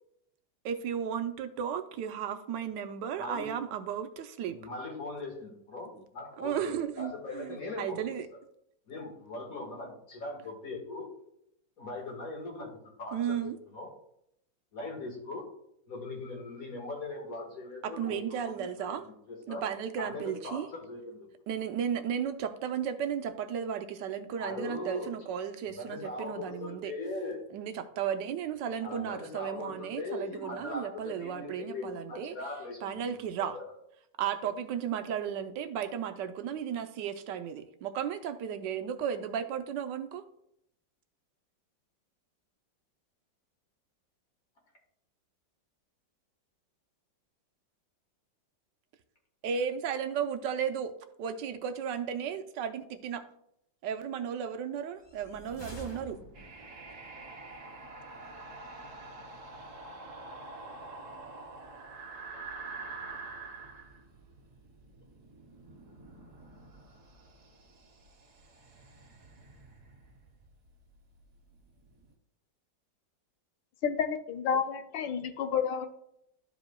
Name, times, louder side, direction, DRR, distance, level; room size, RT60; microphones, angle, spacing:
voice 1, 0.6-4.6 5.9-6.0 6.4-8.3 13.1-13.6 17.8-19.1 19.5-20.7 21.5-26.9 27.5-32.3 32.8-33.6 34.2-40.2 49.4-50.9 51.2-53.2 53.8-56.2, right 8 dB, 80° right, 1.2 m, -34 dB
voice 2, 3.2-3.5 4.5-8.0 8.9-11.1 11.8-12.7 13.0-13.9 14.7-15.5 15.9-19.6 20.0-21.3 24.4-25.1 25.7-27.4 28.8-33.7, left 2 dB, 50° left, 2.1 m, -40 dB
sound 1, 55.0-56.8, equal, 20° left, 0.8 m, -47 dB
sound 2, 56.3-72.1, right 3 dB, 45° right, 1.4 m, -47 dB
voice 3, 73.8-75.9, left 7 dB, 80° left, 1.4 m, -30 dB
13.0 x 5.0 x 2.3 m
omnidirectional pair, 2.0 m